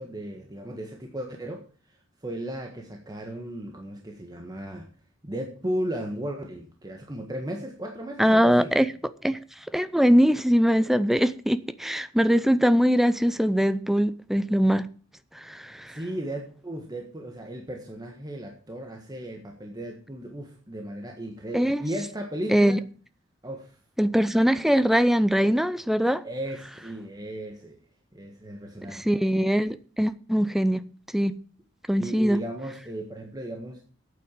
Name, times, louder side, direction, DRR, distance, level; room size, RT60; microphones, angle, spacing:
voice 1, 0.0-4.9 5.2-8.8 15.9-22.8 23.4-23.8 24.2-24.3 26.2-27.8 28.1-29.1 31.9-33.8, right 1 dB, 20° right, 1.5 m, -35 dB
voice 2, 8.2-8.9 9.2-9.4 9.7-14.9 15.3-16.0 21.5-21.8 22.5-22.8 24.0-26.2 28.9-30.8 31.1-31.3 31.9-32.4, equal, ahead, 0.6 m, -22 dB
8.9 x 8.7 x 7.4 m
head